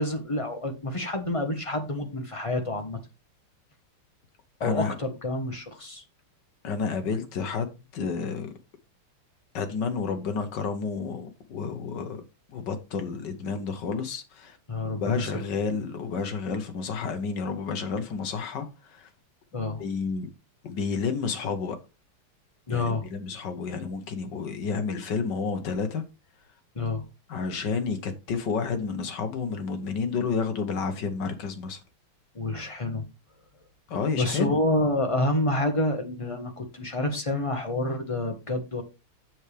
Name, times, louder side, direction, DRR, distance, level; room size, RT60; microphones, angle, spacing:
voice 1, 0.0-3.0 4.6-6.0 14.7-15.3 19.5-19.8 22.7-23.1 26.7-27.0 32.3-33.0 34.1-38.8, left 2 dB, 25° left, 0.7 m, -28 dB
voice 2, 4.6-4.9 6.6-7.7 7.9-8.5 9.5-12.2 12.5-14.6 14.8-19.1 19.8-20.3 20.6-21.8 22.7-26.0 27.3-31.8 33.9-34.6, left 5 dB, 60° left, 1.5 m, -30 dB
7.8 x 7.2 x 3.3 m
omnidirectional pair, 2.4 m